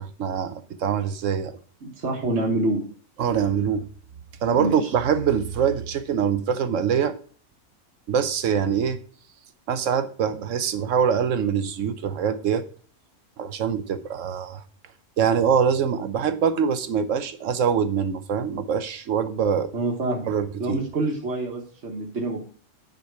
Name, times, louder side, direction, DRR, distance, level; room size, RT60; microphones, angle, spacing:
voice 1, 0.0-1.6 3.2-3.9 4.4-7.1 8.1-9.0 9.7-12.6 13.4-14.6 15.2-19.7 20.3-20.8, right 7 dB, 80° right, 1.2 m, -24 dB
voice 2, 1.8-2.8 4.5-4.9 19.7-20.3 20.6-22.4, right 2 dB, 65° right, 1.7 m, -26 dB
9.5 x 5.1 x 4.7 m
omnidirectional pair, 1.3 m